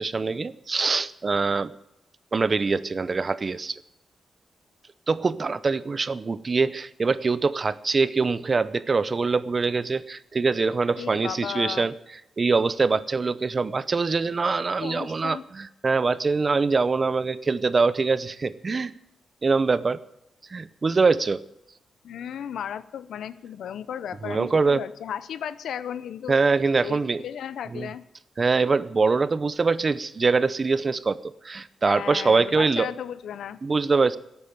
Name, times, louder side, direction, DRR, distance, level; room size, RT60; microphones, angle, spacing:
voice 1, 0.0-1.7 2.3-3.8 5.1-11.9 12.4-18.9 19.4-20.0 20.5-21.4 24.2-24.9 26.3-27.2 27.7-27.9 28.4-32.9 33.6-34.2, right 4 dB, 40° right, 16 dB, 0.6 m, -23 dB
voice 2, 11.0-11.9 14.8-15.4 22.0-26.4 26.8-28.0 31.8-33.6, left 9 dB, 90° left, 15 dB, 0.6 m, -35 dB
12.5 x 8.4 x 9.4 m, 0.83 s
cardioid pair, 95°, 0 cm